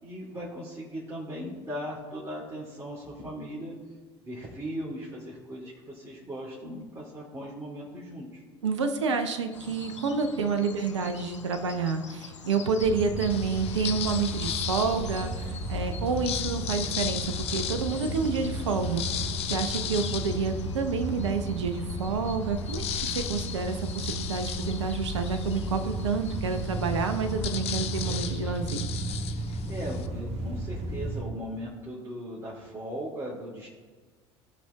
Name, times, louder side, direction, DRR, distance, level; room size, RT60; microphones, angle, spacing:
voice 1, 0.0-3.8 4.2-8.4 29.4-33.7, equal, 20° right, -6 dB, 2.3 m, -38 dB
voice 2, 8.6-22.8 23.1-28.9, right 5 dB, 75° right, 8 dB, 0.8 m, -29 dB
sound 1, 9.5-28.2, left 5 dB, 85° left, 0.6 m, -45 dB
sound 2, 12.8-31.2, right 1 dB, 45° right, 1.7 m, -34 dB
sound 3, 13.3-15.5 16.0-21.2 21.7-21.8 22.1-30.1, left 10 dB, 40° left, 0.6 m, -36 dB
17.0 x 5.8 x 2.3 m, 1.4 s
figure-of-eight pair, 65°, 15 cm